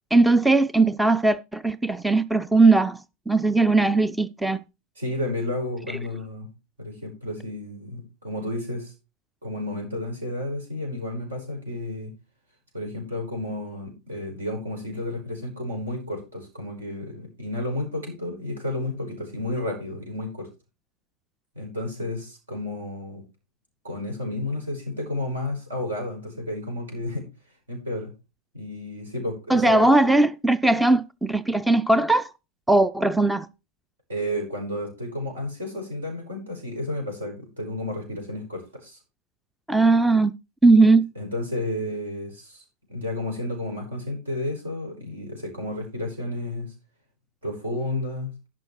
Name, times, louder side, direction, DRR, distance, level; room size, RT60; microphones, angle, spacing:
voice 1, 0.1-3.0 3.3-4.6 29.5-32.3 32.7-33.5 39.7-40.3 40.6-41.1, right 2 dB, 5° right, 0.5 m, -19 dB
voice 2, 5.0-6.5 6.8-8.9 9.4-12.1 12.7-20.5 21.6-23.2 23.8-27.3 27.7-28.1 28.5-29.9 34.1-39.0 41.2-42.6 42.9-46.7 47.4-48.3, left 1 dB, 70° right, 5.1 m, -31 dB
11.5 x 6.0 x 4.6 m
figure-of-eight pair, 90°, 0 cm